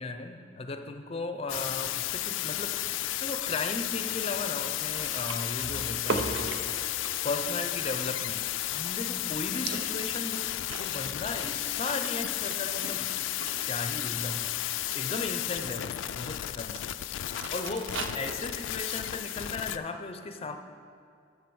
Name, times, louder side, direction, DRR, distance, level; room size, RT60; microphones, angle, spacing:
voice 1, 0.0-2.8 3.2-6.8 7.2-8.4 8.7-10.5 10.8-13.1 13.7-14.5 14.9-16.9 17.5-20.6, left 3 dB, 30° left, 7 dB, 0.5 m, -36 dB
sound 1, 1.5-19.8, left 14 dB, 85° left, 0.3 m, -33 dB
sound 2, 4.9-9.3 9.6-13.7 14.0-14.3 14.9-15.8 16.8-16.9 17.2-19.1, right 3 dB, 85° right, 0.7 m, -39 dB
7.7 x 6.7 x 7.0 m, 2.4 s
head